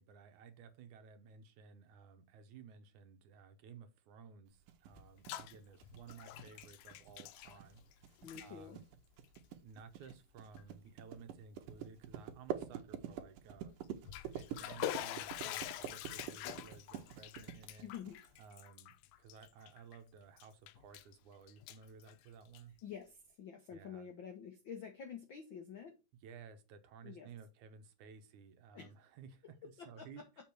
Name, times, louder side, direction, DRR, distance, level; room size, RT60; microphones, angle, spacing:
voice 1, 0.0-8.8 9.6-17.9 18.4-22.7 23.7-24.1 26.2-30.2, right 6 dB, 70° right, 2.3 m, -56 dB
sound 1, 4.7-18.4, right 9 dB, 90° right, 2.6 m, -46 dB
Bathtub (filling or washing), 4.9-5.5 5.8-7.9 8.2-8.5 9.2-9.4 10.0-10.1 10.6-10.7 13.8-20.0 20.4-21.2 21.5-22.8, left 13 dB, 90° left, 2.3 m, -46 dB
voice 2, 8.2-8.8 17.8-18.2 22.8-26.0 27.0-27.3 28.7-28.9 29.4-30.1, left 7 dB, 70° left, 1.1 m, -48 dB
7.2 x 5.2 x 4.5 m
omnidirectional pair, 3.7 m